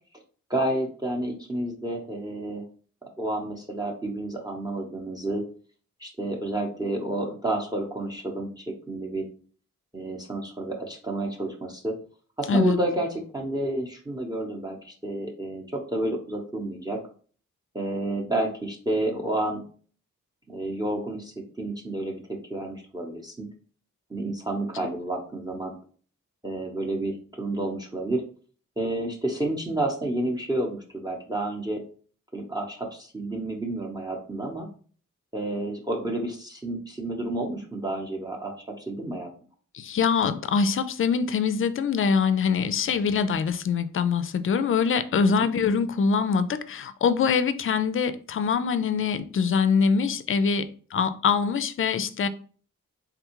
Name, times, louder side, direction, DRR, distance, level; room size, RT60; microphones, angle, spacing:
voice 1, 0.5-2.6 3.2-5.4 6.0-9.3 9.9-12.0 12.4-17.0 17.7-19.6 20.5-23.5 24.1-25.7 26.4-28.2 28.8-31.8 32.3-34.7 35.3-39.3 45.4-45.5, right 1 dB, 10° right, 0.8 m, -30 dB
voice 2, 39.7-52.3, left 5 dB, 40° left, 0.4 m, -24 dB
3.5 x 2.3 x 2.9 m
cardioid pair, 50°, 32 cm